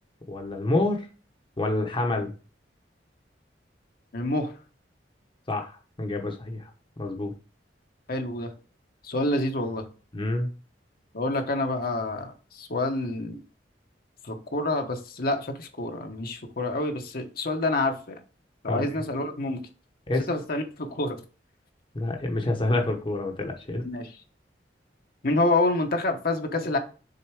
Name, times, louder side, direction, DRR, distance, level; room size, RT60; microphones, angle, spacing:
voice 1, 0.3-1.1 1.6-2.3 5.5-5.7 6.0-6.6 7.0-7.3 10.1-10.5 18.7-18.8 20.1-20.3 21.9-23.8, left 2 dB, 30° left, 3 dB, 1.0 m, -27 dB
voice 2, 4.1-4.5 8.1-8.5 9.0-9.9 11.1-13.4 14.2-18.2 18.6-19.7 20.3-21.2 23.8-24.1 25.2-26.8, left 2 dB, 55° left, 4 dB, 1.1 m, -27 dB
6.8 x 3.9 x 4.7 m, 0.36 s
head